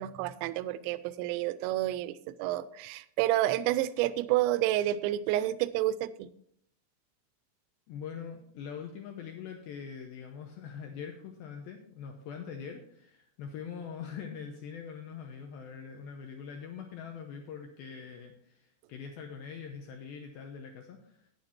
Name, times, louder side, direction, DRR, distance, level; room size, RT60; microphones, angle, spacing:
voice 1, 0.0-6.3, right 14 dB, 85° right, 14 dB, 2.7 m, -29 dB
voice 2, 7.9-21.2, left 7 dB, 85° left, 3 dB, 2.1 m, -43 dB
9.7 x 9.1 x 4.3 m, 0.67 s
omnidirectional pair, 5.4 m